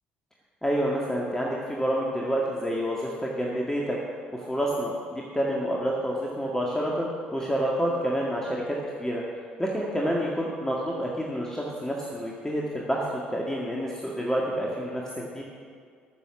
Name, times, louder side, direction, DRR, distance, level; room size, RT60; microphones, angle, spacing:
voice 1, 0.6-4.0 4.3-8.6 9.0-9.2 9.6-15.4, equal, 10° left, -3 dB, 1.9 m, -28 dB
15.0 x 6.9 x 7.0 m, 2.1 s
figure-of-eight pair, 50°, 5 cm